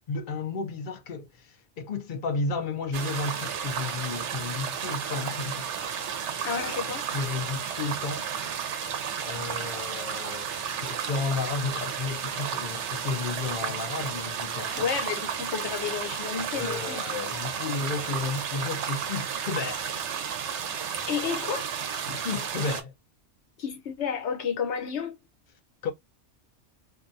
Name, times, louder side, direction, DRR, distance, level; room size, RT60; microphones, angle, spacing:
voice 1, 0.1-5.7 7.1-8.3 9.2-10.5 10.8-14.9 16.5-19.9 22.2-22.9 25.8-25.9, left 4 dB, 50° left, 0.7 m, -32 dB
sound 1, 2.9-22.8, right 7 dB, 75° right, 0.9 m, -33 dB
voice 2, 6.4-7.1 14.7-17.0 17.3-17.5 21.1-21.7 22.1-22.2 23.6-25.2, left 7 dB, 70° left, 1.1 m, -31 dB
2.7 x 2.2 x 2.5 m
omnidirectional pair, 1.2 m